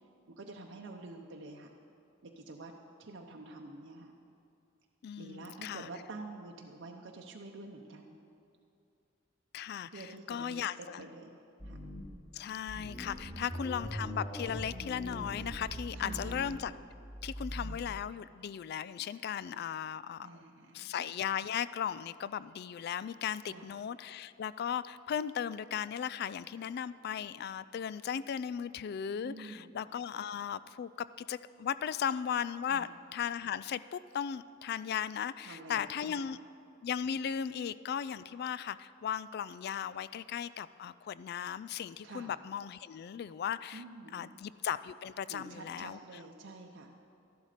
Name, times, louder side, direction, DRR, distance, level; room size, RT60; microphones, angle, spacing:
voice 1, 0.3-1.7 2.2-2.7 3.0-4.1 5.2-8.2 9.9-10.7 11.0-11.8 13.2-13.7 15.9-16.4 20.2-20.9 23.4-23.7 29.2-29.7 32.7-32.9 35.4-36.2 42.0-42.4 43.7-44.4 45.3-46.9, right 2 dB, 65° right, 1 dB, 0.8 m, -48 dB
voice 2, 5.0-5.9 9.5-11.1 12.3-16.7 17.2-20.4 20.7-36.4 36.8-43.8 44.1-46.0, left 8 dB, 55° left, 17 dB, 0.3 m, -37 dB
sound 1, 11.6-12.2 12.7-17.8, equal, 25° left, 2.1 m, -42 dB
13.0 x 11.5 x 5.0 m, 2.6 s
head